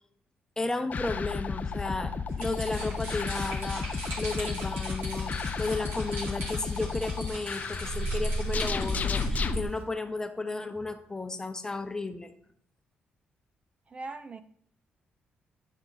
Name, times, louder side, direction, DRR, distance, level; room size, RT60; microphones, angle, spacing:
voice 1, 0.6-2.1 2.4-12.3, left 3 dB, 15° left, 0.8 m, -34 dB
sound 1, 0.9-9.6, left 3 dB, 45° left, 0.6 m, -32 dB
sound 2, 2.3-9.5, right 1 dB, 90° right, 2.5 m, -41 dB
sound 3, 2.8-9.8, right 2 dB, 75° right, 1.5 m, -54 dB
voice 2, 13.9-14.4, right 3 dB, 35° right, 0.4 m, -40 dB
10.0 x 3.8 x 4.0 m
cardioid pair, 85°, 4 cm